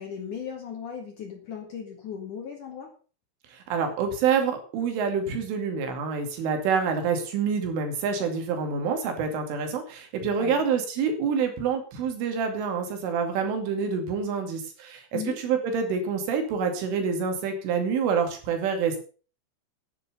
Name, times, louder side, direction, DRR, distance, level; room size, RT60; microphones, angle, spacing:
voice 1, 0.0-2.9 10.4-10.7 15.1-15.4, left 7 dB, 55° left, 3 dB, 2.6 m, -37 dB
voice 2, 3.5-19.0, right 6 dB, 75° right, 5 dB, 5.0 m, -27 dB
10.5 x 10.5 x 6.8 m, 0.39 s
omnidirectional pair, 5.7 m